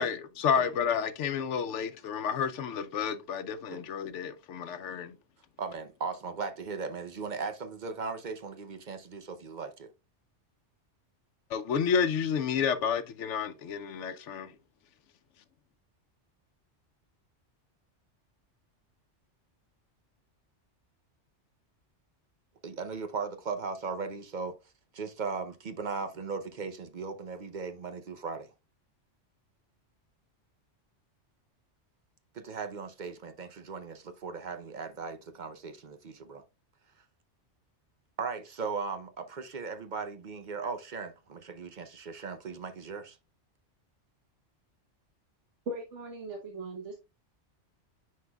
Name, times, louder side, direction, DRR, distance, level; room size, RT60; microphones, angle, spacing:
voice 1, 0.0-5.1 11.5-14.5, left 7 dB, 80° left, 1.0 m, -30 dB
voice 2, 5.6-9.9 22.6-24.6 24.9-28.5 32.3-36.4 38.2-43.2, right 4 dB, 45° right, 0.8 m, -37 dB
voice 3, 45.7-46.9, right 2 dB, 75° right, 1.4 m, -39 dB
9.7 x 4.7 x 2.3 m
omnidirectional pair, 1.2 m